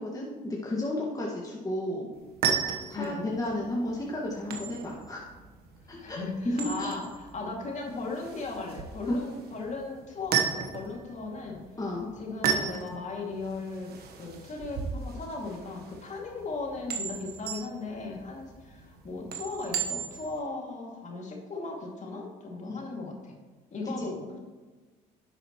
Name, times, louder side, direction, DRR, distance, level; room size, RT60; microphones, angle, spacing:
voice 1, 0.0-2.1 2.9-5.2 5.9-6.2 6.6-6.9 9.1-9.2 11.8-12.1 22.7-22.8 24.0-24.1, left 1 dB, 20° left, -3 dB, 1.8 m, -33 dB
sound 1, 2.1-20.4, right 7 dB, 60° right, 1.2 m, -35 dB
voice 2, 2.9-3.3 6.0-11.6 12.2-23.4 23.7-24.4, left 3 dB, 40° left, 0 dB, 2.4 m, -37 dB
10.0 x 7.9 x 3.1 m, 1.3 s
supercardioid pair, 70°, 18 cm